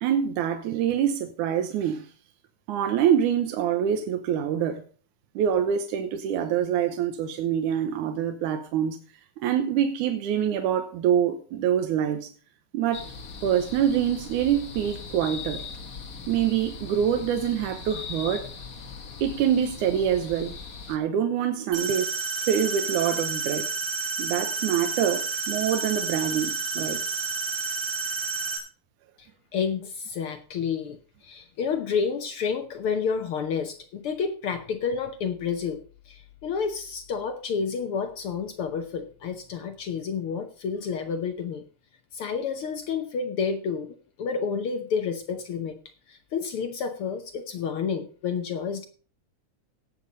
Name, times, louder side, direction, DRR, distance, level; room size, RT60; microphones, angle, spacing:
voice 1, 0.0-2.1 2.7-4.8 5.4-9.0 9.4-12.3 12.7-13.1 13.4-15.6 16.3-18.5 19.2-20.5 20.9-22.1 22.4-23.7 24.2-27.3, right 9 dB, 90° right, 2.4 m, -25 dB
sound 1, 12.9-21.0, left 5 dB, 50° left, 1.0 m, -40 dB
sound 2, 21.7-28.6, right 4 dB, 65° right, 3.7 m, -30 dB
voice 2, 29.2-35.8 36.1-41.6 42.1-43.9 44.2-45.7 46.1-48.9, left 6 dB, 65° left, 1.4 m, -30 dB
18.0 x 7.0 x 4.0 m
omnidirectional pair, 3.4 m